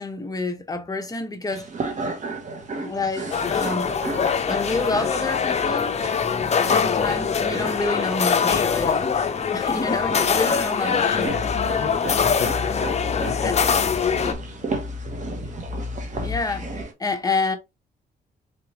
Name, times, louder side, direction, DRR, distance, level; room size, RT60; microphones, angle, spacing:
voice 1, 0.0-1.7 2.8-3.9 4.5-6.0 6.6-9.2 9.5-11.4 13.4-13.6 16.2-17.6, left 3 dB, 20° left, 0.9 m, -28 dB
sound 1, 1.5-16.9, right 3 dB, 45° right, 1.2 m, -35 dB
sound 2, 3.3-14.3, left 6 dB, 40° left, 0.6 m, -23 dB
voice 2, 11.1-14.8, left 6 dB, 65° left, 1.0 m, -35 dB
sound 3, 11.3-16.8, left 4 dB, 30° right, 1.5 m, -34 dB
3.9 x 3.4 x 3.0 m
cardioid pair, 100°, 17 cm